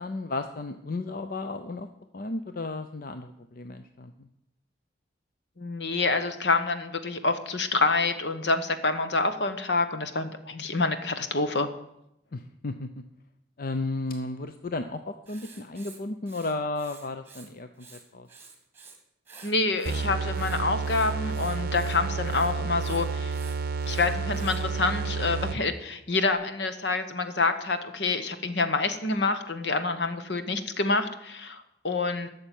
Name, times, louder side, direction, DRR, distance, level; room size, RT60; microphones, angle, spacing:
voice 1, 0.0-1.9 2.1-4.3 12.3-12.9 13.6-18.3, left 2 dB, 55° left, 8 dB, 0.6 m, -34 dB
voice 2, 5.6-11.7 19.4-23.4 23.9-32.3, left 3 dB, 70° left, 9 dB, 1.2 m, -27 dB
Writing, 15.3-17.5 17.8-19.0 19.3-24.7, right 4 dB, 15° right, 2.0 m, -50 dB
sound 1, 19.8-25.8, right 4 dB, 55° right, 0.6 m, -30 dB
12.5 x 6.6 x 9.0 m, 0.83 s
head